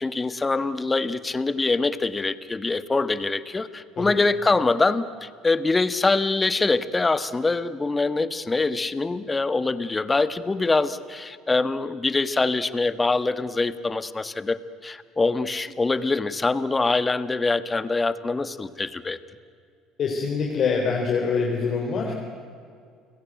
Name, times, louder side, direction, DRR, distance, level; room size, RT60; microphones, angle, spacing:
voice 1, 0.0-19.2, left 3 dB, 20° left, 14 dB, 1.5 m, -24 dB
voice 2, 20.0-22.1, left 5 dB, 50° left, 0 dB, 3.7 m, -24 dB
30.0 x 17.5 x 9.1 m, 2.2 s
hypercardioid pair, 65°, 0 cm